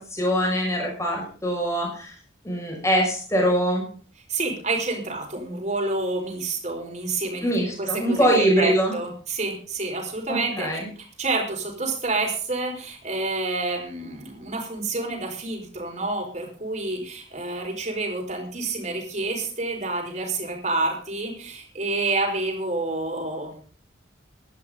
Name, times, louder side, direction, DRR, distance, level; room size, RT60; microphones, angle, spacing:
voice 1, 0.0-2.2 2.4-3.8 7.4-8.9 10.3-10.9, equal, 15° left, -1 dB, 6.2 m, -23 dB
voice 2, 4.3-7.5 7.8-10.7 11.0-23.5, right 3 dB, 35° right, 1 dB, 4.8 m, -28 dB
17.5 x 12.5 x 3.9 m, 0.43 s
head